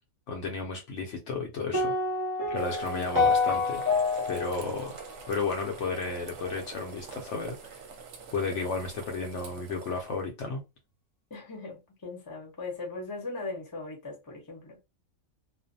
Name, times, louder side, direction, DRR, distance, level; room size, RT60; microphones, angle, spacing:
voice 1, 0.3-1.9 2.5-3.8 4.3-5.0 5.3-7.8 8.3-10.6, left 4 dB, 65° left, 0.8 m, -33 dB
sound 1, 1.7-6.0, left 3 dB, 30° right, 0.3 m, -28 dB
sound 2, 2.5-10.2, right 5 dB, 65° right, 0.9 m, -45 dB
voice 2, 11.3-14.8, left 3 dB, 20° left, 0.6 m, -39 dB
2.5 x 2.1 x 2.6 m
omnidirectional pair, 1.5 m